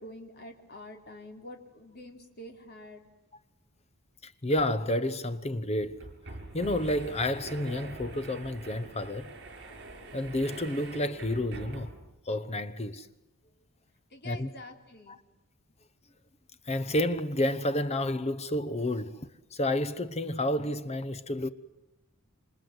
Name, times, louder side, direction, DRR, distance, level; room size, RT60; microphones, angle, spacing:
voice 1, 0.0-3.0 14.1-15.2, left 1 dB, 50° left, 3.8 m, -46 dB
voice 2, 4.2-6.0 6.5-9.3 10.1-11.9 12.3-13.1 14.2-14.5 15.1-15.2 16.7-21.5, left 1 dB, 30° left, 1.0 m, -30 dB
sound 1, 5.8-12.2, right 2 dB, 55° right, 7.2 m, -44 dB
27.0 x 27.0 x 8.0 m
head